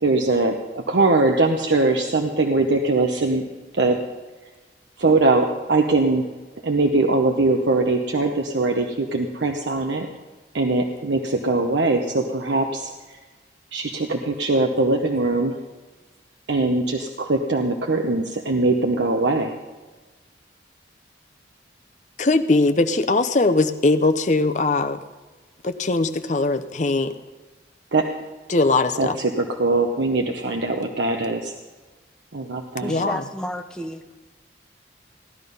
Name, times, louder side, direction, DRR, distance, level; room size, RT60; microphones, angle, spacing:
voice 1, 0.0-3.4 3.8-4.0 5.0-6.2 6.6-10.1 10.5-13.2 13.7-15.6 16.5-19.5 27.9-28.1 29.0-31.5 32.3-32.9, right 2 dB, 80° right, 3 dB, 0.8 m, -21 dB
voice 2, 22.2-25.0 25.6-27.1 28.5-29.2 32.9-33.2, left 2 dB, 40° left, 9 dB, 0.6 m, -20 dB
voice 3, 32.8-34.0, equal, 5° left, 5 dB, 0.7 m, -32 dB
16.0 x 11.0 x 5.4 m, 1.3 s
head